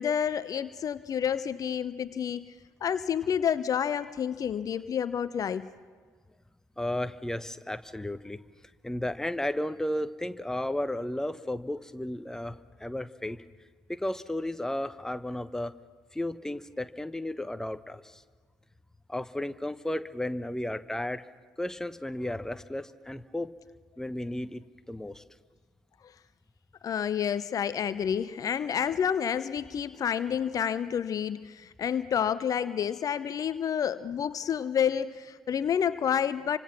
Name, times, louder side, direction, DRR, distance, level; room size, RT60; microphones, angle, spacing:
voice 1, 0.0-2.5 2.8-5.7 26.8-36.6, left 8 dB, 45° left, 15 dB, 0.8 m, -29 dB
voice 2, 6.8-8.4 8.8-13.4 13.9-15.7 16.1-18.2 19.1-21.2 21.6-23.5 24.0-25.2, left 1 dB, 5° left, 11 dB, 1.2 m, -34 dB
29.5 x 25.5 x 6.0 m, 1.5 s
figure-of-eight pair, 45°, 8 cm